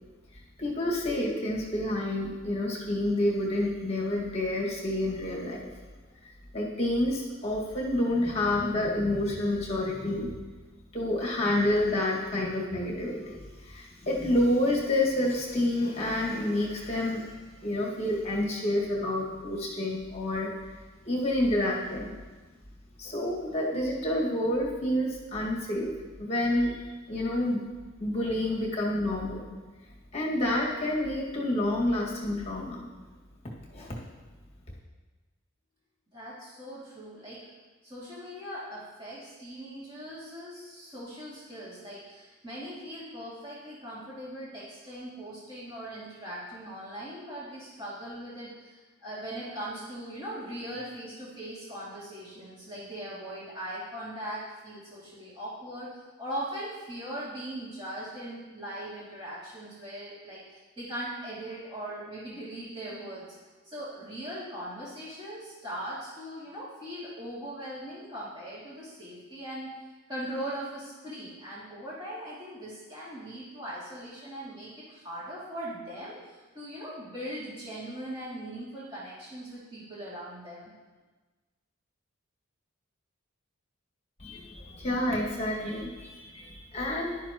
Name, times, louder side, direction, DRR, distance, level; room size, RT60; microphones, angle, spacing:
voice 1, 0.6-5.7 6.5-10.3 10.9-20.5 21.1-22.2 23.0-25.9 26.2-27.6 28.0-29.4 30.1-32.9 33.4-34.0 84.2-87.2, left 1 dB, 30° left, -4 dB, 2.0 m, -29 dB
voice 2, 36.1-37.4 37.8-63.4 63.6-69.7 70.1-80.7, right 1 dB, 20° right, -10 dB, 2.6 m, -40 dB
14.5 x 11.5 x 3.0 m, 1.3 s
head